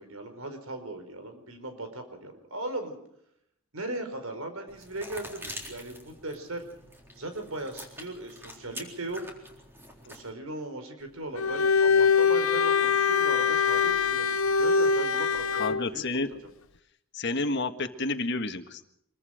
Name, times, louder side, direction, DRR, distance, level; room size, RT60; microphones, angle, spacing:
voice 1, 0.0-3.0 3.7-6.7 7.1-9.2 10.1-16.1, right 2 dB, 85° right, 6 dB, 4.7 m, -38 dB
sound 1, 4.7-10.3, equal, 10° right, 3.9 m, -45 dB
Bowed string instrument, 11.4-15.9, left 5 dB, 80° left, 0.9 m, -23 dB
voice 2, 15.6-16.3 17.1-18.9, left 3 dB, 55° left, 7 dB, 1.7 m, -30 dB
25.5 x 23.0 x 5.1 m, 0.74 s
head